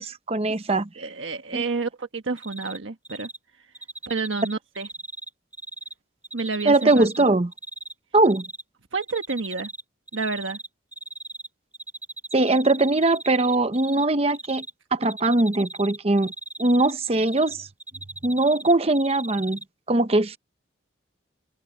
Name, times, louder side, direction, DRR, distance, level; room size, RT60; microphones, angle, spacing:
voice 1, 0.0-0.9 1.5-1.6 6.6-7.5 8.1-8.4 12.3-14.6 14.9-16.3 16.6-17.7 18.2-19.6 19.9-20.4, right 2 dB, 30° right, 0.8 m, -21 dB
voice 2, 1.0-3.3 3.6-3.7 4.1-4.9 6.3-7.3 8.9-9.7 10.1-10.6, right 4 dB, 85° right, 1.3 m, -29 dB
Cricket, 2.4-2.8 3.0-3.4 3.7-5.9 6.2-7.9 8.2-8.6 9.0-9.8 10.1-11.5 11.7-14.0 14.3-14.7 15.0-17.5 17.8-19.6, right 2 dB, 10° right, 4.6 m, -38 dB
open air
head